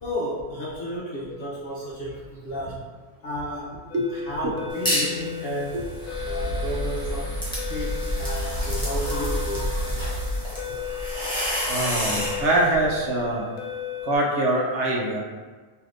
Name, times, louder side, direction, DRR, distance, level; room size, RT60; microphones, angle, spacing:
voice 1, 0.0-2.8 3.2-3.8 4.1-5.9 6.2-7.4 7.7-10.2 12.0-12.1, equal, 60° left, -5 dB, 0.7 m, -32 dB
sound 1, 3.9-14.2, left 10 dB, 90° left, 1.0 m, -36 dB
sound 2, 4.9-5.2 5.6-12.4, equal, 5° left, 0.6 m, -31 dB
sound 3, 6.0-13.2, right 1 dB, 35° right, 1.4 m, -31 dB
voice 2, 11.7-13.4 14.0-15.2, right 1 dB, 70° right, -2 dB, 0.8 m, -24 dB
3.2 x 2.7 x 2.4 m, 1.4 s
omnidirectional pair, 1.4 m